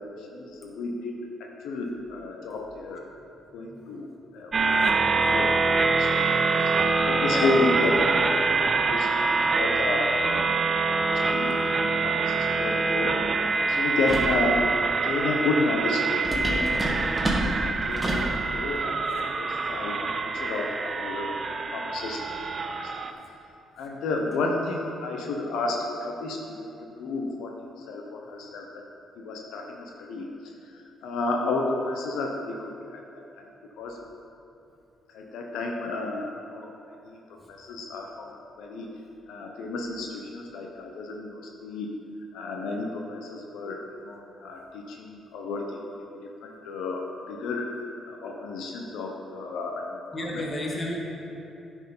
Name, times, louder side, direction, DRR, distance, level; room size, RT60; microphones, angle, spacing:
voice 1, 0.2-3.0 3.5-4.1 4.3-4.5 5.0-6.3 6.6-6.7 7.1-11.6 12.0-13.2 13.7-14.7 15.0-16.1 16.4-16.8 17.2-17.4 17.6-22.2 22.7-23.1 23.8-26.7 27.0-28.8 29.2-33.5 33.8-34.0 35.1-36.7 37.0-37.2 37.5-38.9 39.3-41.9 42.3-45.9 46.4-50.5, left 3 dB, 85° left, 0 dB, 0.8 m, -32 dB
sound 1, 4.5-23.1, right 3 dB, 40° right, 0.5 m, -25 dB
sound 2, 14.1-14.4 16.2-18.3, right 1 dB, 15° right, 1.4 m, -28 dB
voice 2, 50.1-51.0, left 1 dB, 25° left, -2 dB, 1.7 m, -32 dB
9.5 x 4.6 x 5.4 m, 2.8 s
cardioid pair, 90°, 0 cm